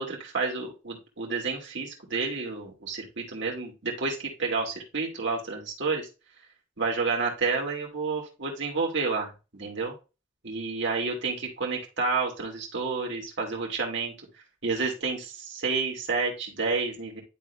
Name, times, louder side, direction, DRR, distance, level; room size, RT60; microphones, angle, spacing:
voice 1, 0.0-6.1 6.8-9.9 10.4-14.1 14.6-17.2, right 4 dB, 60° right, -1 dB, 2.2 m, -30 dB
11.5 x 3.8 x 2.2 m, 0.30 s
head